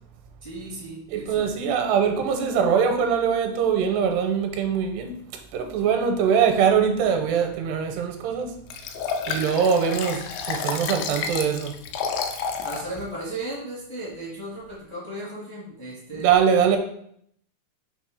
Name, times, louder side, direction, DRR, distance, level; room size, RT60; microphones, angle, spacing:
voice 1, 0.4-1.7 12.6-16.3, right 1 dB, 35° left, 0.4 m, -36 dB
voice 2, 1.1-5.2 5.5-8.5 9.3-11.7 16.2-16.8, right 7 dB, 85° right, 2.7 m, -22 dB
Liquid, 8.7-12.9 13.3-13.4, left 6 dB, 85° left, 2.1 m, -30 dB
6.1 x 3.0 x 5.3 m
omnidirectional pair, 4.8 m